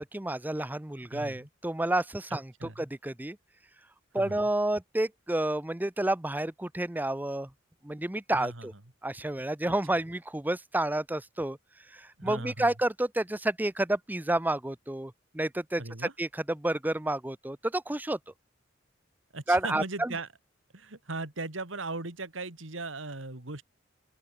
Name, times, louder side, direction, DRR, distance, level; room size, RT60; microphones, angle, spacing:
voice 1, 0.0-3.4 4.1-7.5 7.8-8.7 9.0-11.6 11.9-15.8 16.2-18.2 19.5-20.1, right 1 dB, 10° right, 0.6 m, -30 dB
voice 2, 1.1-1.5 2.6-2.9 4.1-4.4 8.3-8.7 12.2-12.7 15.8-16.1 19.3-20.3 20.7-23.6, right 3 dB, 90° right, 2.7 m, -38 dB
open air
head